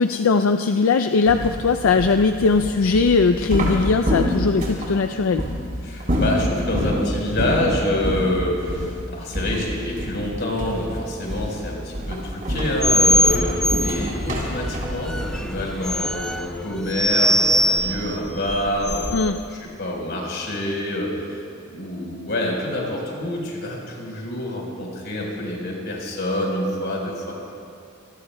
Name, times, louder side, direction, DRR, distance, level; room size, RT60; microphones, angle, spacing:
voice 1, 0.0-5.4 19.1-19.4, left 4 dB, 85° left, 8 dB, 0.4 m, -19 dB
sound 1, 1.3-4.9 5.4-5.6 6.0-7.0 7.4-7.7 8.0-8.3 8.7-8.9 9.3-10.3 10.6-10.9 11.3-11.6 11.9-15.9, equal, 40° right, 3.7 m, -26 dB
voice 2, 5.8-19.1 19.5-27.3, left 1 dB, 55° left, -2 dB, 4.4 m, -27 dB
sound 2, 12.8-19.4, equal, 5° left, 0.4 m, -23 dB
26.5 x 19.0 x 2.3 m, 2.4 s
head